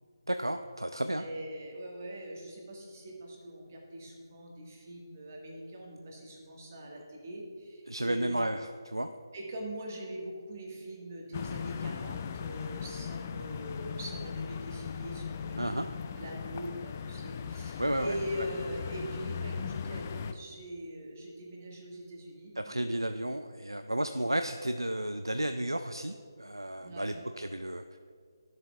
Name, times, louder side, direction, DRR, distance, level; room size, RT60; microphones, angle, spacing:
voice 1, 0.3-1.2 7.9-9.1 15.6-15.9 17.8-18.2 22.7-27.8, right 1 dB, 90° right, 8 dB, 0.3 m, -32 dB
voice 2, 1.2-8.3 9.3-15.8 16.2-23.0 26.8-27.2, equal, 35° right, -1 dB, 1.5 m, -42 dB
sound 1, 11.3-20.3, left 6 dB, 30° left, 0.3 m, -38 dB
13.5 x 7.4 x 2.3 m, 2.1 s
figure-of-eight pair, 150°, 2 cm